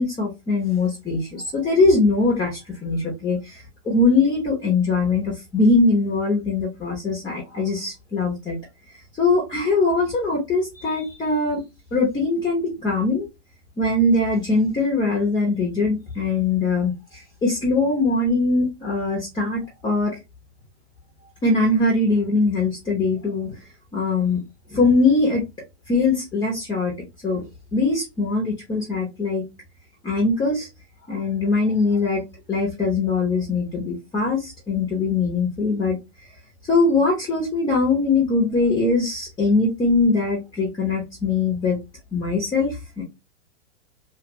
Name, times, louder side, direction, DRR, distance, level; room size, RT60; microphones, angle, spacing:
voice 1, 0.0-8.6 9.2-11.6 11.9-13.3 13.8-20.1 21.4-23.5 23.9-24.4 24.7-25.4 25.9-26.9 27.2-27.4 27.7-29.4 30.0-30.7 31.1-32.2 32.5-36.0 36.7-41.8 42.1-43.0, left 3 dB, 10° left, 0.9 m, -21 dB
2.9 x 2.4 x 2.9 m
hypercardioid pair, 140°, 35 cm